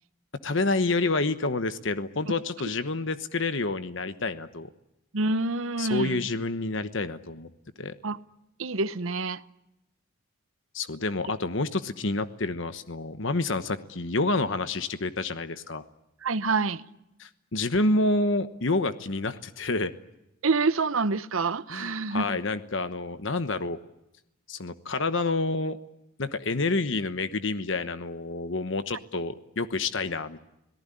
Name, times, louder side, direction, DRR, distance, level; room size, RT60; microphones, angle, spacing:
voice 1, 0.4-4.7 5.8-7.5 7.8-7.9 10.7-15.8 17.2-19.9 21.7-23.8 24.5-25.8 26.2-30.4, left 3 dB, 65° left, 1.1 m, -28 dB
voice 2, 5.1-6.2 8.0-8.2 8.6-9.4 16.2-16.8 20.4-22.2, right 3 dB, 80° right, 0.9 m, -27 dB
26.5 x 18.5 x 10.0 m
head